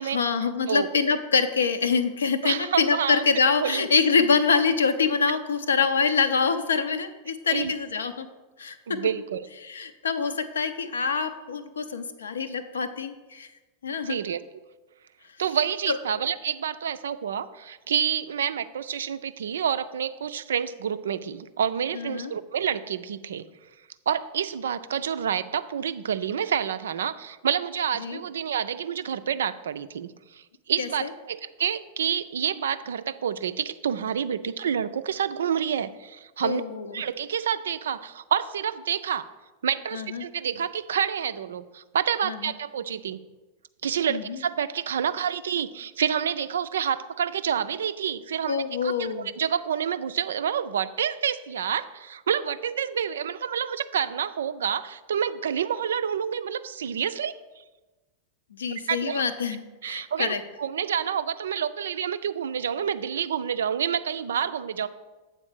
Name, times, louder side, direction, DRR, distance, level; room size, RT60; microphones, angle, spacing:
voice 1, 0.0-8.3 8.6-8.8 9.6-13.5 13.8-14.2 15.9-16.0 21.9-22.3 28.0-28.2 30.8-31.1 36.4-36.9 39.9-40.3 42.2-42.5 44.1-44.4 48.5-49.3 58.5-60.4, left 5 dB, 70° left, 10 dB, 0.6 m, -25 dB
voice 2, 2.4-3.3 3.6-3.9 7.5-7.7 8.9-9.5 14.0-14.4 15.4-23.5 24.1-36.6 36.9-39.3 39.6-43.2 43.8-49.1 49.4-57.3 58.9-59.2 59.8-64.9, right 8 dB, 65° right, 13 dB, 0.3 m, -28 dB
7.8 x 4.2 x 6.2 m, 1.2 s
figure-of-eight pair, 90°, 0 cm